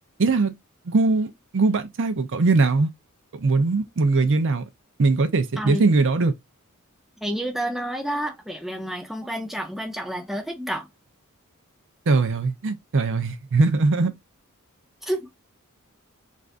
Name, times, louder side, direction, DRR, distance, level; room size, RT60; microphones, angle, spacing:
voice 1, 0.2-0.5 0.9-2.9 3.4-4.6 5.0-6.3 12.1-14.1, right 3 dB, 60° right, 0.6 m, -21 dB
voice 2, 5.6-5.9 7.2-10.9 15.0-15.3, right 1 dB, ahead, 0.4 m, -29 dB
2.5 x 2.5 x 3.3 m
head